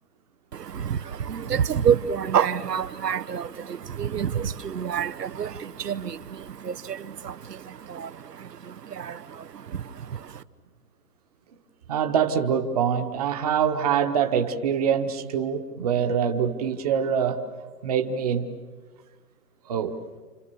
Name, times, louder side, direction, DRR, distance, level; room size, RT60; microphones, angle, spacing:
voice 1, 0.5-10.4, right 8 dB, 80° right, 1.1 m, -28 dB
voice 2, 11.9-17.4 17.8-18.5 19.7-19.9, right 8 dB, 25° right, 1.2 m, -24 dB
29.5 x 27.0 x 7.0 m
hypercardioid pair, 165°, 47 cm